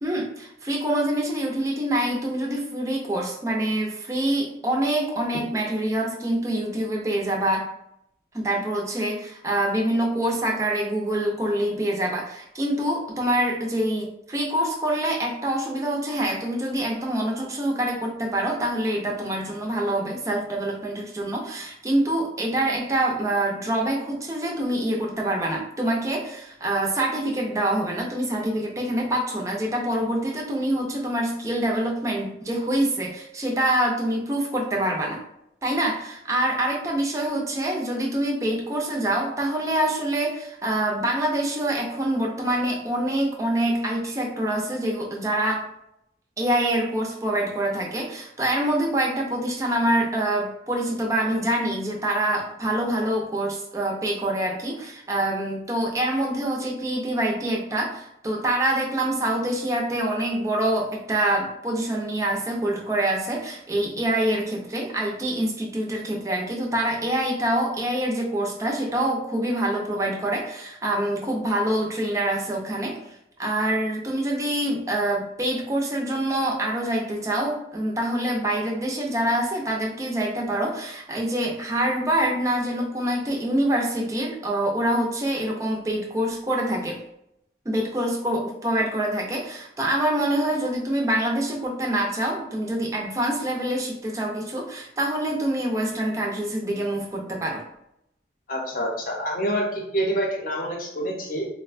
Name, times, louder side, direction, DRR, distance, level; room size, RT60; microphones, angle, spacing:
voice 1, 0.0-7.7 8.3-35.2 35.6-45.7 46.4-73.0 73.4-87.0 87.7-97.6, right 1 dB, 15° right, -1 dB, 0.5 m, -25 dB
voice 2, 98.5-101.5, equal, 45° left, -1 dB, 0.7 m, -27 dB
3.9 x 2.1 x 2.4 m, 0.79 s
head